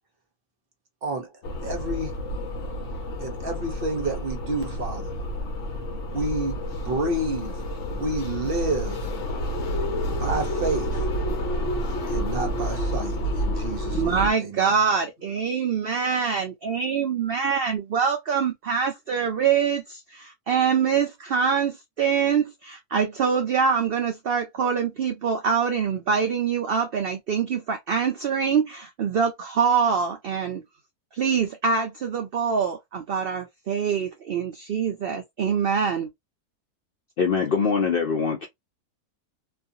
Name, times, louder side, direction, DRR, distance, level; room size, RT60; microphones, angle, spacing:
sound 1, 1.4-14.3, equal, 60° left, 0.9 m, -29 dB
voice 1, 1.6-2.1 3.2-5.1 6.1-7.6 7.9-9.1 10.2-11.1 12.1-14.7, right 2 dB, 50° right, 0.7 m, -30 dB
voice 2, 13.9-30.6 31.1-36.1, right 6 dB, 90° right, 0.5 m, -24 dB
voice 3, 37.2-38.5, left 5 dB, 80° left, 0.5 m, -23 dB
2.5 x 2.5 x 2.6 m
omnidirectional pair, 1.6 m